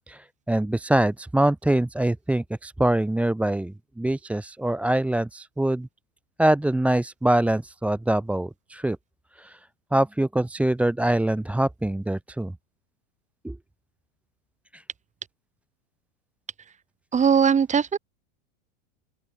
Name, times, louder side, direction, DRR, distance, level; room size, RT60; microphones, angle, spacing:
voice 1, 0.1-5.9 6.4-9.0 9.3-12.5 13.4-13.6 14.7-14.8, right 1 dB, 5° right, 1.4 m, -24 dB
voice 2, 17.1-18.0, right 7 dB, 20° right, 7.0 m, -19 dB
open air
supercardioid pair, 120°, 33 cm